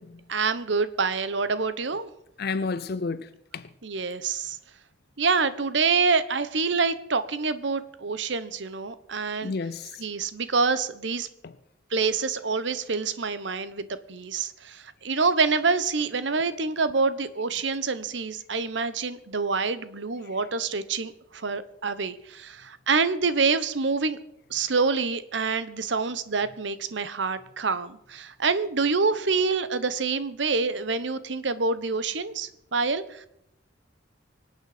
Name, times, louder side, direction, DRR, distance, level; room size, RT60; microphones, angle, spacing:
voice 1, 0.3-2.1 3.8-4.6 5.2-9.5 10.0-11.3 11.9-24.2 24.5-33.3, right 4 dB, 70° right, 1.0 m, -26 dB
voice 2, 2.4-3.7 9.4-10.0 11.4-11.6, left 4 dB, 55° left, 0.6 m, -31 dB
25.0 x 8.7 x 5.0 m
head